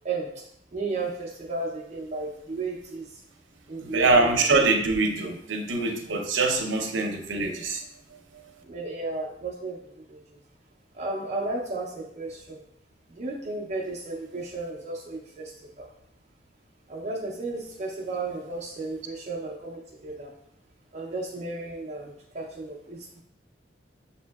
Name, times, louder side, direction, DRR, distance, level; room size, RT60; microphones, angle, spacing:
voice 1, 0.0-3.2 3.7-4.3 6.9-7.0 8.6-10.4 10.9-12.6 13.1-15.9 16.9-20.3 20.9-23.2, right 3 dB, 40° right, -3 dB, 0.5 m, -34 dB
voice 2, 3.8-7.8, right 3 dB, 80° right, 4 dB, 0.6 m, -24 dB
6.3 x 2.7 x 2.3 m, 0.71 s
head